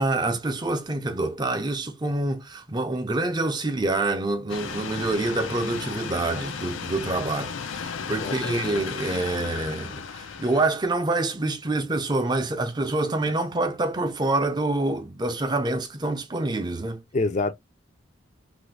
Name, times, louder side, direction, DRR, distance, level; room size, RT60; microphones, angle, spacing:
voice 1, 0.0-17.0, right 2 dB, 20° right, 0.5 m, -26 dB
sound 1, 4.5-10.6, left 6 dB, 85° left, 0.5 m, -34 dB
voice 2, 8.1-8.8 17.1-17.5, left 3 dB, 40° left, 0.5 m, -27 dB
3.1 x 2.5 x 3.2 m
head